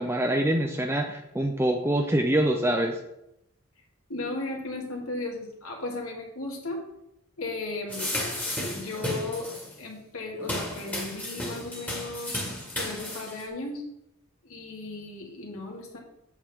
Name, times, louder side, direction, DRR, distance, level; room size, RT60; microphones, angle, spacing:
voice 1, 0.0-3.0, right 1 dB, 10° right, 3 dB, 0.4 m, -25 dB
voice 2, 4.1-6.8 7.4-8.1 8.7-9.5 9.8-12.4 12.8-13.8 14.4-16.0, left 2 dB, 85° left, 0 dB, 2.1 m, -35 dB
sound 1, 7.9-9.8 10.4-13.5, left 1 dB, 5° left, 1.3 m, -33 dB
8.1 x 7.2 x 3.5 m, 0.82 s
head